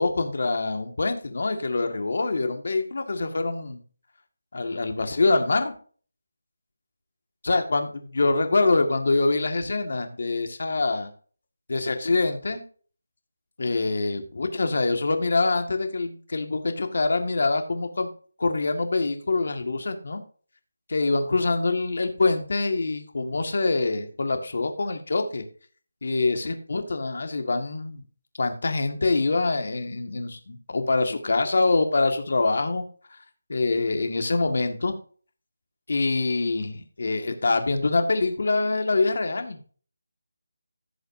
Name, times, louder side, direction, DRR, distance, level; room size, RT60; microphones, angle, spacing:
voice 1, 0.0-3.8 4.5-5.7 7.4-11.1 11.7-12.6 13.6-18.1 18.4-20.2 20.9-25.4 26.0-28.0 28.4-32.8 33.5-35.0 35.9-39.6, left 3 dB, 55° left, 6 dB, 1.8 m, -25 dB
16.0 x 6.4 x 2.7 m, 0.41 s
figure-of-eight pair, 175°, 0 cm